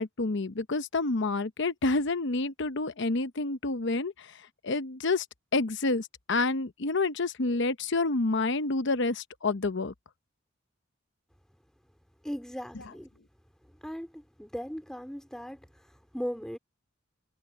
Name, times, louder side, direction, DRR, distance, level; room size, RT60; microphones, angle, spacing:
voice 1, 0.0-4.1 4.6-5.2 5.5-9.9, left 3 dB, 65° left, 0.9 m, -28 dB
voice 2, 12.2-13.1 13.8-16.6, equal, 5° left, 4.4 m, -38 dB
head